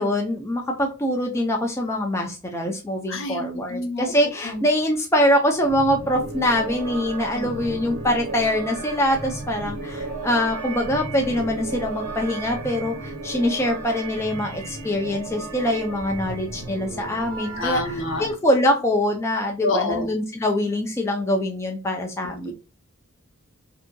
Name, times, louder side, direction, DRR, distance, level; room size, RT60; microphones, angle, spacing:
voice 1, 0.0-22.5, left 1 dB, 15° left, 2 dB, 0.4 m, -24 dB
voice 2, 3.1-4.1 4.4-4.6 7.3-7.5 17.6-18.2 19.6-20.1 22.5-22.6, left 2 dB, 65° left, 4 dB, 0.6 m, -27 dB
sound 1, 5.6-18.3, right 3 dB, 85° right, 0.7 m, -34 dB
2.7 x 2.5 x 2.2 m, 0.33 s
head